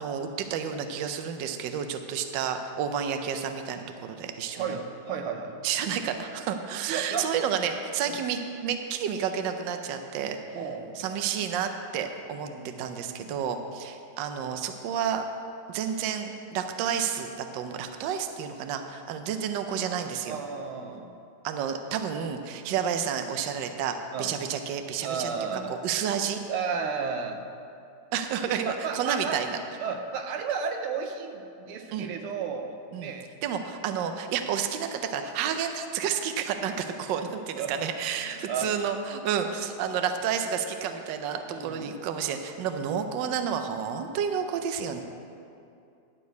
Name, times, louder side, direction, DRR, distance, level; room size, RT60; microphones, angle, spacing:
voice 1, 0.0-4.7 5.6-10.4 10.9-12.5 12.8-15.2 15.7-20.4 21.4-25.3 25.7-26.4 28.1-29.6 31.9-32.1 32.9-33.1 33.4-45.0, right 8 dB, 70° right, 7 dB, 1.2 m, -30 dB
voice 2, 4.6-5.5 6.9-7.3 8.1-8.2 10.5-11.1 12.4-13.3 20.3-21.1 24.1-24.3 25.0-25.7 26.5-27.4 28.6-29.4 29.8-33.3 37.5-37.7 38.2-38.7 41.5-41.9 44.9-45.0, right 6 dB, 90° right, 5 dB, 1.7 m, -33 dB
11.5 x 4.6 x 8.0 m, 2.6 s
omnidirectional pair, 2.3 m